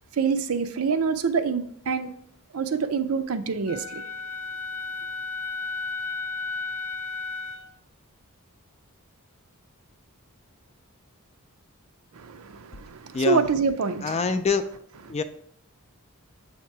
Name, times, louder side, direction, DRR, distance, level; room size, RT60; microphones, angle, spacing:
voice 1, 0.1-2.1 2.5-4.0 12.1-14.2, right 5 dB, 70° right, 9 dB, 0.5 m, -26 dB
Wind instrument woodwind instrument, 3.7-7.7, left 4 dB, 90° left, 0.4 m, -33 dB
voice 2, 14.0-14.6 15.1-15.2, left 4 dB, 30° left, 9 dB, 0.4 m, -24 dB
7.4 x 2.9 x 4.5 m, 0.66 s
head